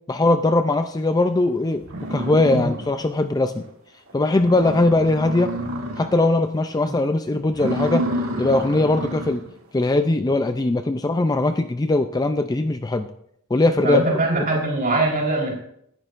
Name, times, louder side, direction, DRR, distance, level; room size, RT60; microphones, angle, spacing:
voice 1, 0.1-1.8 2.1-3.6 4.1-5.5 6.0-8.1 8.4-9.4 9.7-13.1 13.5-14.0, left 2 dB, 15° left, 9 dB, 0.4 m, -20 dB
sound 1, 1.4-1.5 1.8-3.2 3.6-3.7 4.1-4.2 4.4-6.3 6.7-7.0 7.5-9.5, right 1 dB, 65° right, 2.5 m, -29 dB
voice 2, 13.8-15.6, right 2 dB, 40° right, -2 dB, 4.0 m, -22 dB
18.0 x 11.0 x 2.5 m, 0.71 s
head